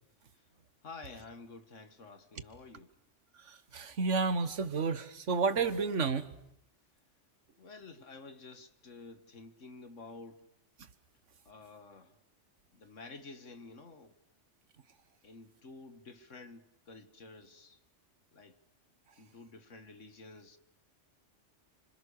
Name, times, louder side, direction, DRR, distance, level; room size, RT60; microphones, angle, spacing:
voice 1, 0.8-2.9 7.6-10.5 11.5-12.2 12.7-14.2 15.2-17.8 18.3-18.6 19.2-20.6, left 3 dB, 90° left, 2.2 m, -51 dB
voice 2, 3.3-6.3, right 4 dB, 80° right, 1.7 m, -31 dB
29.0 x 26.5 x 6.6 m
omnidirectional pair, 1.2 m